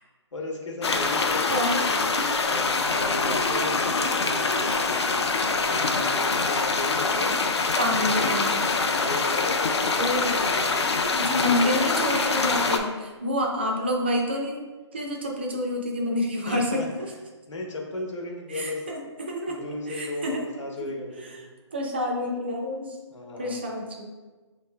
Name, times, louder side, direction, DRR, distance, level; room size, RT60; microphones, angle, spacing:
voice 1, 0.3-1.5 2.4-5.2 5.6-7.3 7.8-8.2 8.8-10.9 11.3-11.6 16.5-16.9 17.5-18.8 19.5-21.4 23.1-23.6, left 1 dB, 80° left, 0 dB, 1.0 m, -35 dB
sound 1, 0.8-12.8, left 4 dB, 65° left, 0.4 m, -24 dB
voice 2, 1.5-1.9 7.8-8.8 10.0-10.4 11.2-14.5 14.9-17.1 18.5-20.5 20.8-20.9 21.2-21.4 21.7-23.0 23.4-24.0, left 1 dB, 20° right, 0 dB, 0.3 m, -28 dB
5.8 x 3.1 x 2.2 m, 1.3 s
hypercardioid pair, 170°, 15 cm